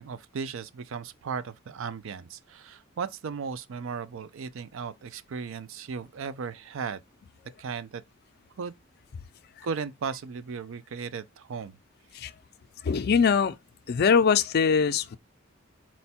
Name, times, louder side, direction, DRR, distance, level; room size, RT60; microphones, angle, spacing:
voice 1, 0.0-7.0 7.6-8.0 8.6-8.7 9.6-11.8, right 5 dB, 70° right, 0.4 m, -36 dB
voice 2, 12.8-13.6 13.9-15.2, left 6 dB, 50° left, 0.4 m, -22 dB
4.4 x 2.2 x 4.1 m
head